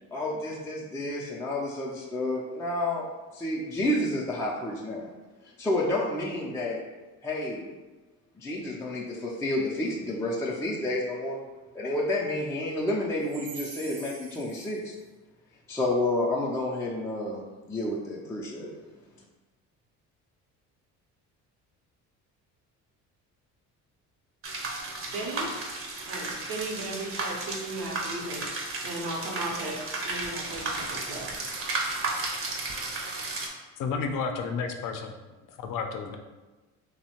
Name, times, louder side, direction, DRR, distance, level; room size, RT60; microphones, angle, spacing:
voice 1, 0.1-3.1 3.3-5.1 5.6-6.8 7.2-7.7 8.4-11.4 11.7-14.9 15.7-17.4 17.7-18.7, left 1 dB, 10° left, -5 dB, 0.3 m, -30 dB
voice 2, 13.7-14.2 25.1-25.5 26.0-28.5 28.8-29.8 30.0-31.3, right 2 dB, 75° right, -1 dB, 0.7 m, -36 dB
sound 1, 24.4-33.5, right 2 dB, 40° right, 0.6 m, -34 dB
voice 3, 33.8-35.1 35.6-36.2, left 5 dB, 65° left, 5 dB, 0.5 m, -31 dB
2.7 x 2.0 x 2.8 m, 1.2 s
supercardioid pair, 75°, 35 cm